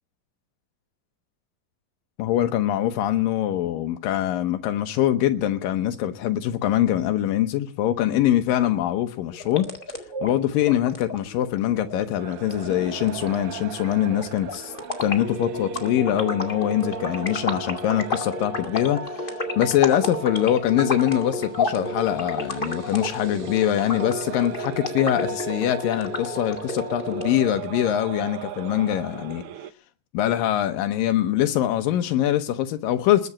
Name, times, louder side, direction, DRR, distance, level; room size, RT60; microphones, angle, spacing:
voice 1, 2.2-9.7 10.2-14.7 15.0-29.4 30.1-33.3, left 12 dB, 85° left, 2.7 m, -23 dB
sound 1, 9.3-27.3, left 3 dB, 20° left, 1.5 m, -32 dB
sound 2, 12.2-29.7, right 11 dB, 80° right, 1.3 m, -37 dB
20.5 x 7.9 x 8.7 m
omnidirectional pair, 3.9 m